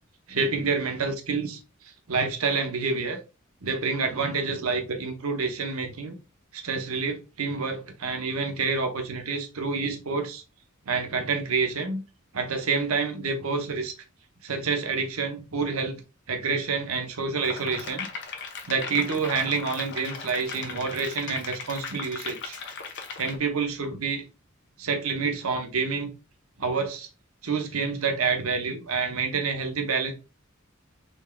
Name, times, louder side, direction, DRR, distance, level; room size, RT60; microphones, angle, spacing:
voice 1, 0.3-3.2 3.6-6.1 6.5-10.4 10.9-12.0 12.3-13.9 14.4-16.0 16.3-18.1 18.7-22.6 23.2-24.2 24.8-26.1 26.6-27.1 27.4-30.1, right 4 dB, 90° right, 0.9 m, -28 dB
sound 1, 17.4-23.4, left 5 dB, 55° left, 0.8 m, -37 dB
4.0 x 3.3 x 2.3 m
head